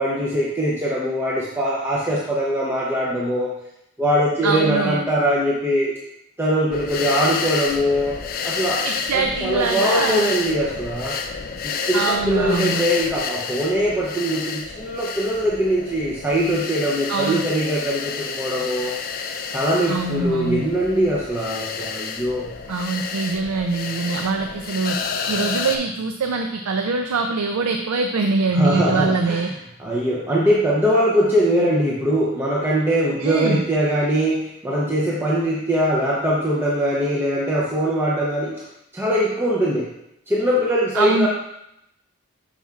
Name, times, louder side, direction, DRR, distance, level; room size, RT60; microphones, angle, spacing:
voice 1, 0.0-3.5 4.0-5.9 6.4-8.2 8.4-8.8 9.1-11.2 11.9-18.9 19.5-22.5 28.5-29.5 29.8-38.7 38.9-39.9 40.3-41.3, equal, 10° right, -6 dB, 0.7 m, -22 dB
voice 2, 4.4-5.0 8.8-10.3 11.9-12.9 17.1-17.4 19.9-20.6 22.7-25.0 25.3-29.5 33.2-33.6 40.9-41.3, right 4 dB, 85° right, 5 dB, 0.5 m, -23 dB
sound 1, 6.7-25.8, left 5 dB, 40° left, 0.4 m, -30 dB
7.0 x 5.7 x 2.4 m, 0.82 s
head